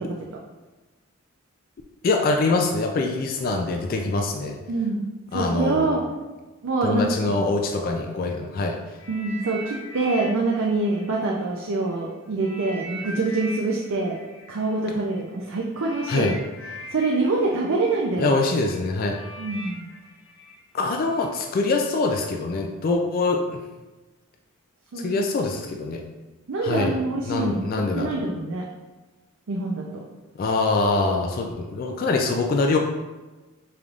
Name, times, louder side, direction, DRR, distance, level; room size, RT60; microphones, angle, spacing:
voice 1, 2.0-4.6 5.3-5.9 6.8-8.8 16.1-16.3 18.2-19.2 20.7-23.6 25.0-26.0 26.6-27.0 27.3-28.2 30.4-32.8, left 3 dB, 45° left, 2 dB, 0.3 m, -24 dB
voice 2, 4.7-5.0 5.3-6.0 6.6-7.1 7.4-7.5 9.1-14.2 14.5-16.4 16.9-18.3 19.4-19.9 24.9-25.2 26.5-28.7 29.5-30.0, right 3 dB, 75° right, -2 dB, 0.5 m, -25 dB
sound 1, 9.0-11.9 12.4-21.4 22.1-22.2, equal, 80° left, 1.1 m, -41 dB
5.1 x 3.3 x 2.4 m, 1.2 s
head